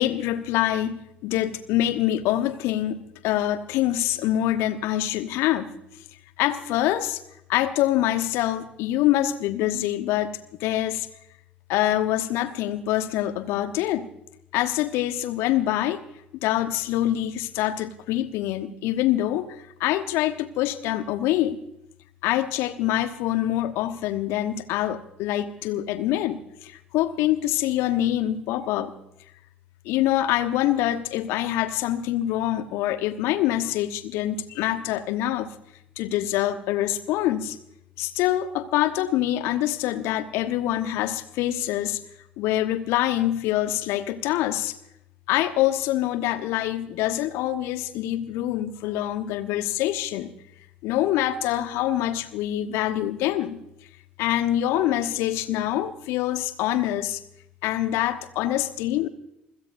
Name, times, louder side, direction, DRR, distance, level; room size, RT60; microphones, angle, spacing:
voice 1, 0.0-5.7 6.4-7.2 7.5-10.3 10.6-11.1 11.7-14.1 14.5-16.0 16.4-21.6 22.2-28.9 29.8-35.5 36.0-37.6 38.0-42.0 42.4-44.8 45.3-50.3 50.8-53.6 54.2-57.2 57.6-59.1, left 13 dB, 60° left, 11 dB, 1.1 m, -25 dB
27.0 x 16.5 x 2.6 m, 0.81 s
figure-of-eight pair, 55°, 5 cm